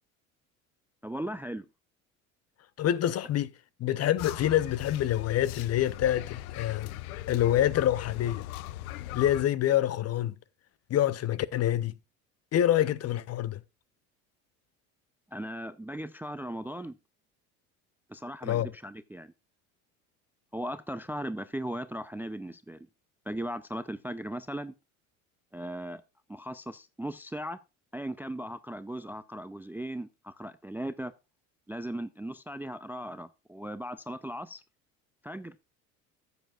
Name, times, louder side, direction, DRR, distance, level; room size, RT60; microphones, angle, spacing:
voice 1, 1.0-1.7 15.3-17.0 18.1-19.3 20.5-22.9 23.3-24.7 25.5-26.0 26.3-27.6 27.9-31.1 31.7-34.6 35.2-35.6, right 1 dB, 5° right, 0.4 m, -37 dB
voice 2, 2.8-3.5 3.8-6.9 7.3-8.4 9.1-10.3 10.9-11.9 12.5-13.6 18.4-18.7, left 12 dB, 35° left, 0.6 m, -26 dB
sound 1, 4.2-9.5, left 15 dB, 80° left, 0.6 m, -39 dB
13.0 x 8.0 x 2.4 m
hypercardioid pair, 70°, 42 cm